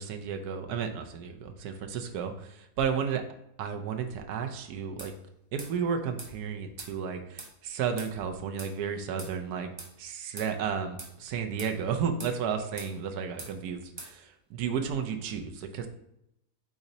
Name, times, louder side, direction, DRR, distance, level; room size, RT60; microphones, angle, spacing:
voice 1, 0.0-3.2 3.6-5.1 5.5-9.7 10.0-15.9, right 7 dB, 75° right, 5 dB, 1.1 m, -33 dB
sound 1, 5.0-5.1 5.6-5.7 6.2-6.3 6.8-6.9 7.4-7.5 8.0-8.1 8.6-8.7 9.2-9.3 9.8-9.9 10.4-10.5 11.0-11.1 11.6-11.7 12.2-12.4 12.8-12.9 13.4-13.5 14.0-14.1, right 2 dB, 50° right, 0.3 m, -43 dB
4.9 x 4.1 x 2.6 m, 0.80 s
omnidirectional pair, 1.8 m